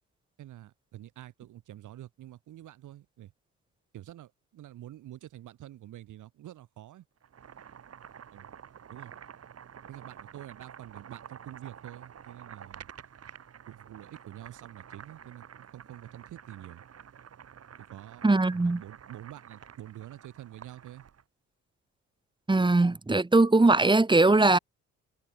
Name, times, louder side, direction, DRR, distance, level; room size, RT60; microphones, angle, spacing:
voice 1, 0.4-3.3 3.9-7.0 8.3-8.5 8.9-9.1 9.9-12.9 13.7-16.8 17.9-21.0, right 13 dB, 80° right, 6.3 m, -47 dB
Boiling, 7.2-21.2, right 8 dB, 55° right, 6.3 m, -49 dB
voice 2, 18.2-18.8 22.5-24.6, right 2 dB, 15° right, 1.9 m, -21 dB
cardioid pair, 90°, 30 cm